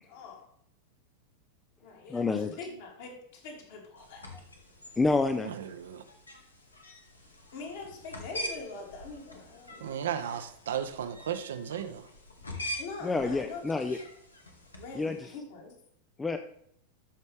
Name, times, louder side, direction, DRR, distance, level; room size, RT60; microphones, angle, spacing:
voice 1, 0.0-0.5 1.8-2.3 2.6-4.3 7.5-10.0 10.7-10.9 12.8-14.0 14.8-15.7, left 3 dB, 55° left, -1 dB, 2.6 m, -43 dB
voice 2, 2.1-2.6 5.0-5.5 13.0-14.0 15.0-15.2 16.2-16.4, left 3 dB, 10° left, 7 dB, 0.5 m, -28 dB
sound 1, 4.0-15.3, equal, 80° left, 1.4 m, -44 dB
voice 3, 5.4-6.0 9.8-12.1, right 9 dB, 60° right, 9 dB, 0.7 m, -35 dB
13.0 x 5.3 x 3.4 m, 0.70 s
figure-of-eight pair, 90°, 0 cm